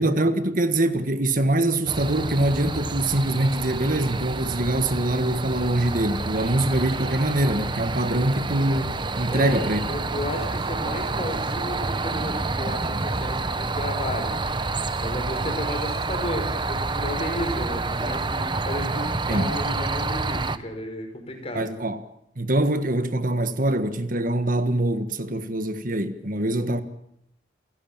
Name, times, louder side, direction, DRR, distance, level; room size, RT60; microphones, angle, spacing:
voice 1, 0.0-9.8 19.3-19.5 21.5-22.0 22.4-26.8, right 1 dB, 50° right, 1.6 m, -24 dB
sound 1, 1.9-20.6, right 3 dB, 25° right, 1.0 m, -28 dB
voice 2, 9.3-14.4 15.0-21.8 26.5-26.8, left 1 dB, 35° left, 5.5 m, -33 dB
28.0 x 16.5 x 8.9 m
head